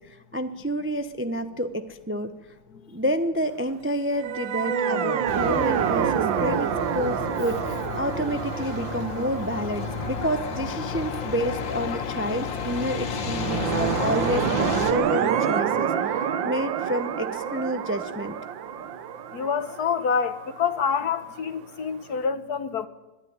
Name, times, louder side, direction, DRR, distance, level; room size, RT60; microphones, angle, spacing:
voice 1, 0.3-2.3 2.9-18.4, equal, 10° right, 0.5 m, -29 dB
sound 1, 4.1-11.4 13.2-21.0, right 8 dB, 90° right, 1.7 m, -28 dB
Truck, 5.3-14.9, left 5 dB, 85° left, 2.5 m, -32 dB
voice 2, 19.3-22.9, left 6 dB, 60° left, 1.5 m, -27 dB
22.5 x 13.0 x 9.6 m
omnidirectional pair, 2.0 m